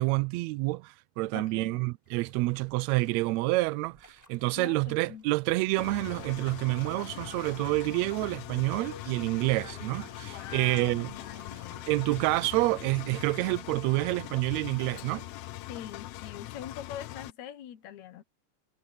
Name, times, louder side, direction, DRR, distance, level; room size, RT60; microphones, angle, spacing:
voice 1, 0.0-11.1 11.9-15.2, right 22 dB, 80° right, 1.6 m, -28 dB
voice 2, 1.3-1.8 4.6-5.3 10.2-11.8 15.7-18.2, left 10 dB, 70° left, 2.4 m, -43 dB
sound 1, 2.0-16.4, right 1 dB, 10° right, 5.0 m, -61 dB
sound 2, 5.7-12.7, right 2 dB, 50° right, 6.9 m, -53 dB
Engine, 5.8-17.3, left 17 dB, 90° left, 1.3 m, -42 dB
omnidirectional pair, 3.5 m